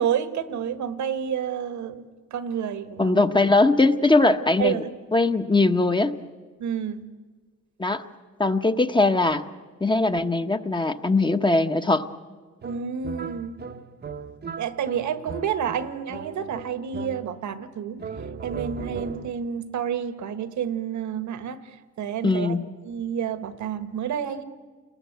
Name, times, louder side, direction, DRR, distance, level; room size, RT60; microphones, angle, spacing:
voice 1, 0.0-3.2 4.6-4.9 6.6-7.1 12.6-13.6 14.6-18.0 18.4-22.6 22.8-24.4, right 8 dB, 70° right, 12 dB, 1.6 m, -29 dB
voice 2, 3.0-4.8 5.1-6.2 7.8-8.0 8.4-9.4 9.8-12.1 22.2-22.6, left 2 dB, 15° left, 8 dB, 1.1 m, -20 dB
sound 1, 12.6-17.6 18.0-19.5, right 5 dB, 35° right, 1.0 m, -38 dB
28.5 x 20.0 x 8.2 m, 1.4 s
cardioid pair, 90°, 30 cm